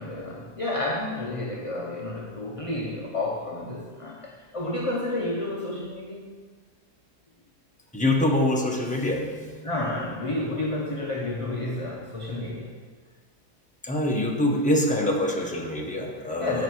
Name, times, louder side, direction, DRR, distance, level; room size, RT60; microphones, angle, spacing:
voice 1, 0.0-6.3 9.6-12.7 16.4-16.6, left 2 dB, 25° left, -2 dB, 0.8 m, -30 dB
voice 2, 7.9-9.6 13.8-16.6, left 1 dB, 5° left, -1 dB, 1.2 m, -25 dB
15.5 x 5.7 x 4.8 m, 1.5 s
omnidirectional pair, 1.7 m